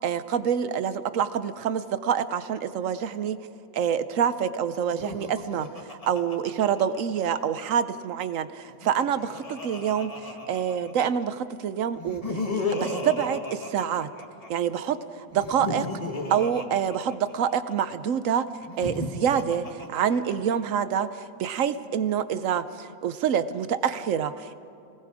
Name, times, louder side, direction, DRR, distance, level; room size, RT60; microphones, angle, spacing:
voice 1, 0.0-3.4 3.7-14.1 14.5-15.9 16.3-18.5 18.8-24.6, right 8 dB, 70° right, 13 dB, 0.7 m, -27 dB
Laughter, 4.9-7.4 8.7-11.1 12.0-14.5 15.3-17.7 18.6-20.5, left 2 dB, 20° left, 1.5 m, -34 dB
29.0 x 19.5 x 4.9 m, 2.7 s
omnidirectional pair, 2.1 m